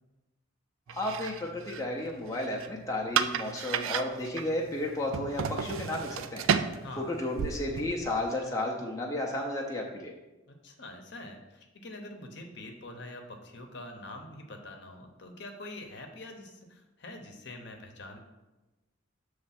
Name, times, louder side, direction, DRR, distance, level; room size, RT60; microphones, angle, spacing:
voice 1, 0.9-6.4 6.7-10.1, left 1 dB, 15° left, -2 dB, 0.6 m, -33 dB
sound 1, 0.9-8.3, right 7 dB, 80° right, 0.4 m, -34 dB
voice 2, 6.8-7.2 10.5-18.2, left 2 dB, 55° left, 3 dB, 0.8 m, -45 dB
7.1 x 3.2 x 5.8 m, 1.1 s
head